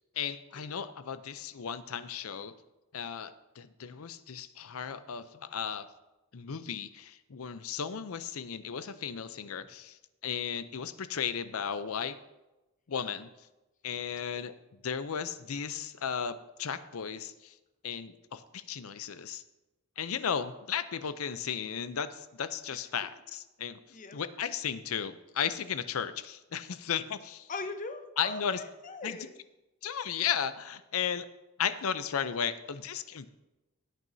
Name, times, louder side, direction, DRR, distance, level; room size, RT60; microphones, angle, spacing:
voice 1, 0.2-2.5 2.9-5.9 6.3-12.2 12.9-13.3 13.8-14.5 14.8-17.5 17.8-19.4 20.0-27.5 28.2-28.6 29.0-29.2 29.8-31.3 31.6-33.3, left 7 dB, 85° left, 13 dB, 0.6 m, -35 dB
voice 2, 23.9-24.2 27.5-29.3, left 3 dB, 40° left, 7 dB, 0.8 m, -40 dB
16.5 x 9.1 x 2.7 m, 1.0 s
head